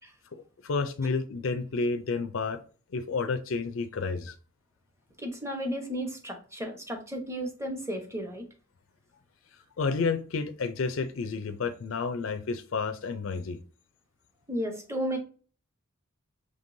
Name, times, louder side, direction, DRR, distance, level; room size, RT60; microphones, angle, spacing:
voice 1, 0.3-2.6 2.9-4.3 9.8-13.6, left 4 dB, 70° left, 8 dB, 0.5 m, -30 dB
voice 2, 5.2-8.5 14.5-15.2, equal, 15° right, 4 dB, 1.0 m, -33 dB
5.2 x 3.3 x 2.6 m, 0.38 s
head